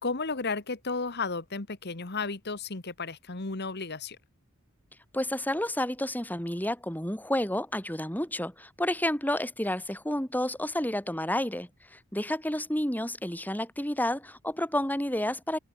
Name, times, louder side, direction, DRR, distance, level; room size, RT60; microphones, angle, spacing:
voice 1, 0.0-4.2, left 4 dB, 50° left, 1.6 m, -33 dB
voice 2, 5.1-15.6, left 1 dB, 10° left, 4.9 m, -30 dB
head